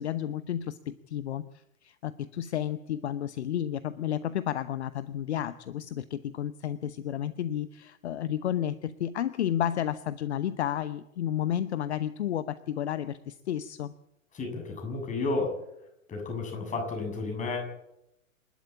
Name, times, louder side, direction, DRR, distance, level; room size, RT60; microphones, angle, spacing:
voice 1, 0.0-13.9, left 10 dB, 55° left, 14 dB, 1.0 m, -32 dB
voice 2, 14.3-15.6 16.1-17.6, left 3 dB, 20° left, 3 dB, 7.1 m, -32 dB
27.5 x 12.5 x 8.7 m, 0.86 s
figure-of-eight pair, 110°, 41 cm